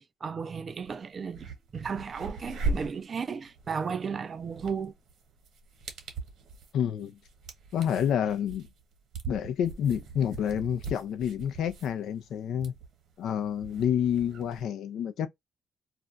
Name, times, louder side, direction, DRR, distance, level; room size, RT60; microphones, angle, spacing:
voice 1, 0.0-1.5 1.7-4.9, right 6 dB, 45° right, 0.3 m, -34 dB
sound 1, 0.8-0.9 1.3-14.6, right 3 dB, 70° right, 1.1 m, -40 dB
voice 2, 6.7-7.2 7.7-8.7 9.3-12.7 13.2-15.3, left 9 dB, 75° left, 0.4 m, -29 dB
2.4 x 2.2 x 3.7 m
cardioid pair, 90°, 0 cm